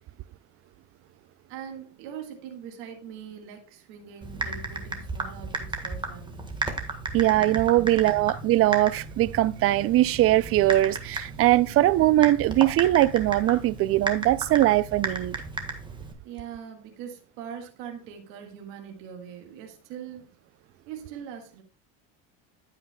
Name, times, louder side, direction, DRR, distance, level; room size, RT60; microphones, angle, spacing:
voice 1, 1.5-6.5 16.2-20.3 20.9-21.6, right 8 dB, 75° right, 1.7 m, -42 dB
Typing, 4.2-16.1, right 3 dB, 15° right, 1.5 m, -34 dB
voice 2, 7.1-15.4, right 15 dB, 40° right, 0.4 m, -21 dB
14.5 x 5.8 x 2.3 m
supercardioid pair, 115°, 35 cm